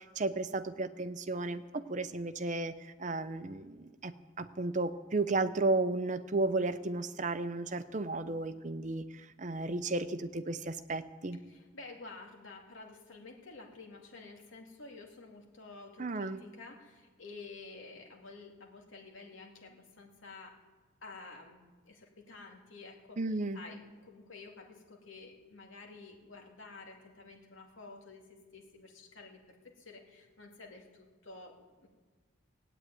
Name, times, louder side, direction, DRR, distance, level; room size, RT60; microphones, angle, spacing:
voice 1, 0.0-11.4 16.0-16.4 23.2-23.6, right 2 dB, 35° right, 11 dB, 0.7 m, -34 dB
voice 2, 11.5-20.6 21.0-31.9, left 3 dB, 75° left, 1 dB, 2.6 m, -51 dB
17.0 x 8.8 x 9.3 m, 1.4 s
head